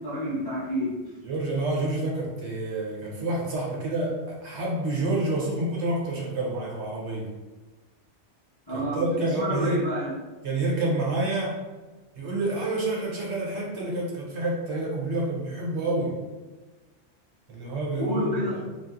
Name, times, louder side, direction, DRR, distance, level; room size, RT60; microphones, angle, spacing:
voice 1, 0.0-1.1 8.7-10.1 18.0-18.6, equal, 30° left, -10 dB, 0.4 m, -29 dB
voice 2, 1.2-7.3 8.7-9.8 10.4-11.6 12.1-16.2 17.5-18.6, right 2 dB, 65° right, -3 dB, 0.9 m, -28 dB
2.7 x 2.4 x 2.3 m, 1.2 s
omnidirectional pair, 1.3 m